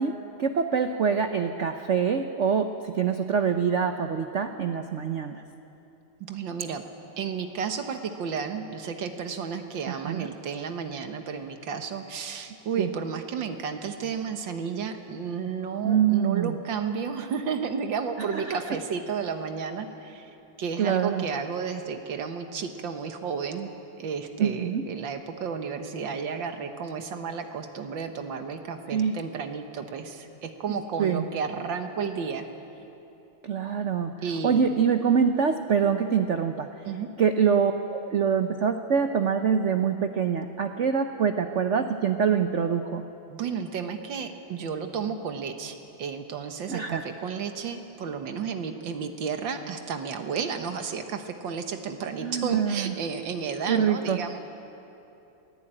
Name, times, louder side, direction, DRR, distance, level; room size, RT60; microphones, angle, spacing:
voice 1, 0.0-5.4 9.9-10.3 12.8-12.9 15.8-16.5 18.3-18.6 20.8-21.3 24.4-24.8 28.9-29.1 31.0-31.2 33.4-34.1 34.4-36.7 37.2-43.0 46.7-47.0 52.2-52.9 53.7-54.2, right 7 dB, 85° right, 7 dB, 0.6 m, -25 dB
voice 2, 6.2-6.8 7.2-20.3 20.6-23.7 24.0-32.5 34.2-34.7 36.9-37.1 43.3-54.4, right 6 dB, 65° right, 7 dB, 1.9 m, -32 dB
23.0 x 16.0 x 8.9 m, 2.9 s
omnidirectional pair, 2.3 m